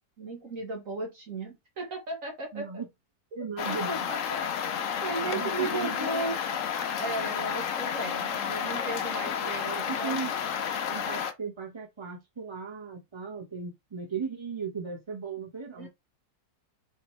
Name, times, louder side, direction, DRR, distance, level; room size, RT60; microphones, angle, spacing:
voice 1, 0.2-2.7 3.7-4.2 4.6-4.7 5.0-6.4 7.0-10.2 15.8-15.9, right 2 dB, 55° right, 1.4 m, -35 dB
voice 2, 2.5-2.9 3.3-4.1 5.2-6.5 9.4-10.3 10.9-15.9, right 5 dB, 20° right, 1.3 m, -37 dB
sound 1, 3.6-11.3, left 8 dB, 60° left, 0.9 m, -31 dB
4.0 x 3.6 x 3.2 m
omnidirectional pair, 1.7 m